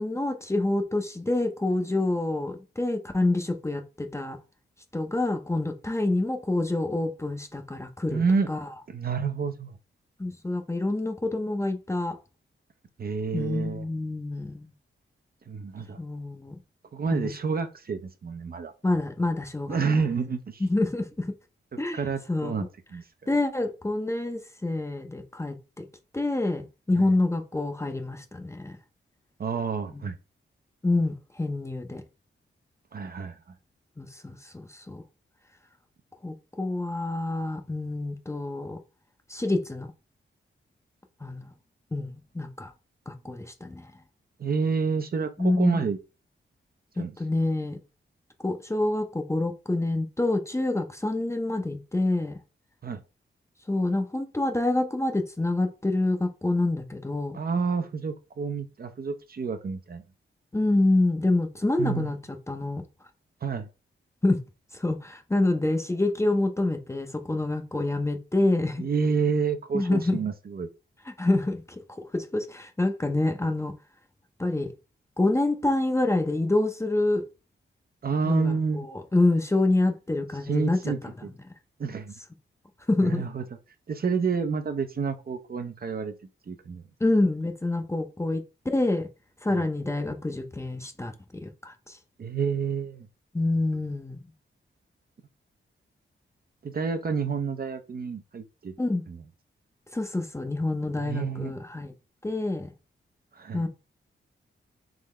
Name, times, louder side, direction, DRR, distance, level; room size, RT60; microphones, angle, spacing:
voice 1, 0.0-4.4 4.9-8.2 8.5-8.7 10.2-12.2 13.3-14.7 16.0-16.6 17.1-17.3 18.8-19.8 20.6-21.3 21.8-22.0 22.3-22.6 23.3-25.9 26.1-28.8 29.9-30.0 30.8-32.0 34.0-35.0 36.2-38.8 39.3-39.9 41.2-41.5 41.9-42.7 43.1-43.9 45.4-45.8 47.0-47.8 48.4-52.4 53.7-57.4 60.5-62.8 64.2-64.4 64.7-68.8 69.7-70.2 71.1-71.8 72.1-73.7 74.4-74.7 75.2-77.2 78.2-80.8 81.0-81.1 82.9-83.2 87.0-89.1 89.4-92.0 93.3-94.2 98.8-99.0 99.9-101.9 102.2-102.7 103.5-103.7, left 2 dB, 15° left, 0.6 m, -27 dB
voice 2, 8.1-8.5 8.9-9.8 13.0-13.9 15.5-16.0 16.9-18.7 19.7-20.6 21.7-22.7 22.9-23.0 27.0-27.1 29.4-30.2 32.9-33.4 44.4-46.0 47.0-47.1 52.8-53.0 57.3-60.0 61.8-62.1 63.4-63.7 68.8-70.7 78.0-78.9 80.5-81.3 81.8-82.1 83.0-83.4 83.9-86.1 86.5-86.8 89.5-89.7 92.2-93.1 96.6-98.7 99.1-99.2 100.9-101.5 103.3-103.7, right 5 dB, 45° right, 0.6 m, -29 dB
3.7 x 3.3 x 3.2 m
cardioid pair, 80°, 21 cm